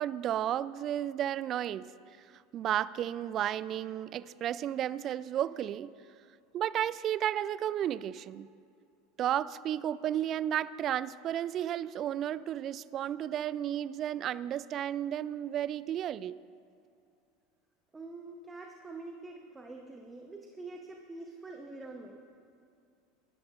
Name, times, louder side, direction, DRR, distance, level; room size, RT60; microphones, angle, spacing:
voice 1, 0.0-1.9 2.5-5.9 6.5-8.5 9.2-16.4, right 11 dB, 40° right, 19 dB, 0.3 m, -33 dB
voice 2, 17.9-22.2, right 3 dB, 15° right, 2 dB, 0.9 m, -45 dB
20.5 x 13.0 x 2.5 m, 2.5 s
hypercardioid pair, 80°, 0 cm